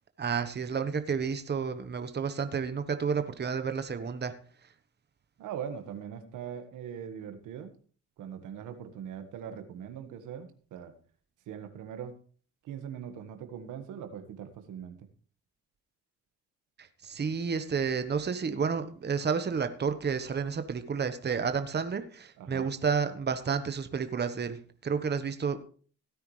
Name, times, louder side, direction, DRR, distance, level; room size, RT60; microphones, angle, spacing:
voice 1, 0.2-4.3 16.8-25.6, right 6 dB, 35° right, 9 dB, 1.2 m, -31 dB
voice 2, 5.4-7.7 8.2-10.9 11.4-12.2 12.6-15.1 22.4-22.7, right 8 dB, 90° right, 7 dB, 1.6 m, -41 dB
16.5 x 9.6 x 3.3 m, 0.42 s
cardioid pair, 90°, 30 cm